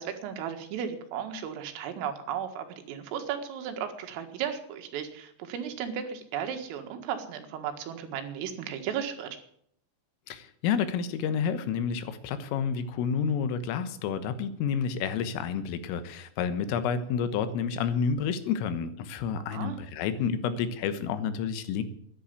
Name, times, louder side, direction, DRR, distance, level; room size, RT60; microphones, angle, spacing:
voice 1, 0.0-9.4 19.4-19.8, right 8 dB, 85° right, 7 dB, 4.4 m, -35 dB
voice 2, 10.3-21.8, left 7 dB, 85° left, 11 dB, 3.9 m, -30 dB
13.5 x 11.0 x 8.3 m, 0.67 s
omnidirectional pair, 5.7 m